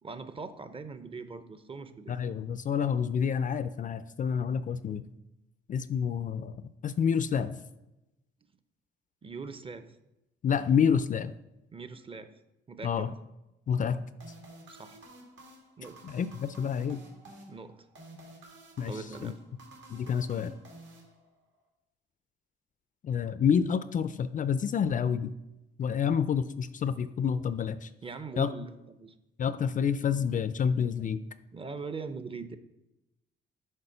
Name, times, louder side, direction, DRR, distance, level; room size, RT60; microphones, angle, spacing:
voice 1, 0.0-2.2 9.2-10.0 11.7-12.3 12.7-13.1 14.7-15.0 15.8-16.1 17.5-17.8 18.9-19.4 28.0-29.2 31.5-32.6, right 4 dB, 25° right, 11 dB, 0.6 m, -41 dB
voice 2, 2.1-5.0 5.7-7.6 10.4-11.3 12.8-13.1 13.7-14.1 16.0-17.0 18.8-19.3 19.9-20.5 23.0-25.3 25.8-27.9 28.4-28.5 29.4-31.2, left 7 dB, 40° left, 13 dB, 0.4 m, -28 dB
sound 1, 14.2-21.6, right 1 dB, 70° right, 2.0 m, -52 dB
6.7 x 4.3 x 5.6 m, 0.94 s
cardioid pair, 90°, 20 cm